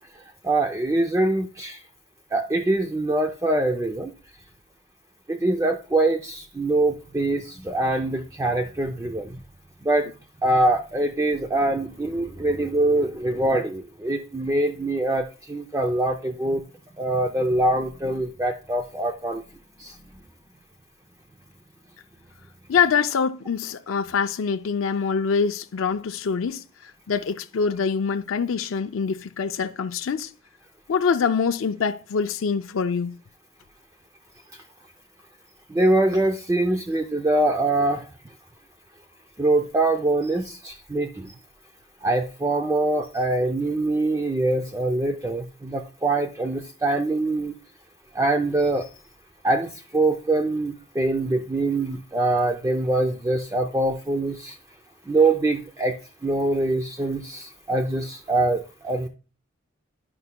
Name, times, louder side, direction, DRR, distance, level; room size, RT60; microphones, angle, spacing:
voice 1, 0.4-1.8 2.3-4.1 5.3-9.4 9.8-10.1 10.4-16.6 17.0-19.4 19.8-19.9 35.7-38.1 39.4-41.3 42.0-47.5 48.1-48.9 49.4-54.6 55.1-56.0 56.2-59.1, right 2 dB, 15° right, 0.4 m, -24 dB
voice 2, 22.7-26.6 27.1-30.3 30.9-33.2, left 6 dB, 65° left, 0.4 m, -24 dB
11.0 x 5.4 x 2.2 m
head